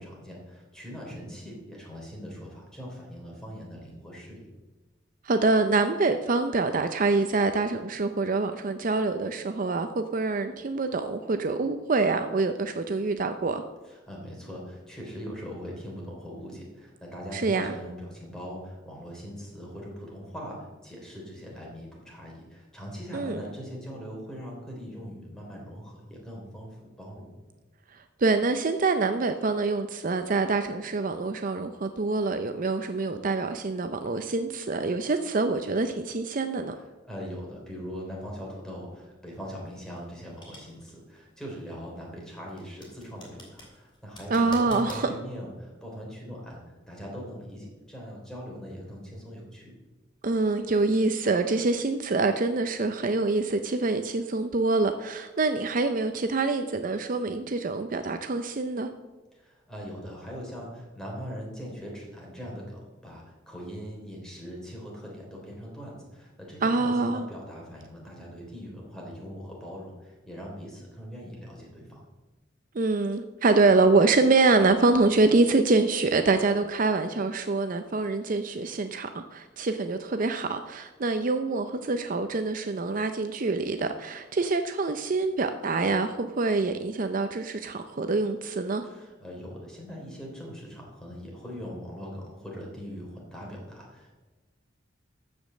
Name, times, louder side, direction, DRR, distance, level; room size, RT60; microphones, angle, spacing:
voice 1, 0.0-4.5 13.8-27.3 36.7-49.7 59.3-72.1 88.8-94.1, equal, 5° left, -3 dB, 3.2 m, -41 dB
voice 2, 5.2-13.6 17.3-17.7 23.1-23.4 27.9-36.7 44.3-45.1 50.2-58.9 66.6-67.3 72.7-88.9, right 3 dB, 45° right, 8 dB, 0.5 m, -25 dB
sound 1, 39.4-45.1, left 1 dB, 25° left, 3.5 m, -46 dB
13.5 x 5.2 x 7.5 m, 1.2 s
head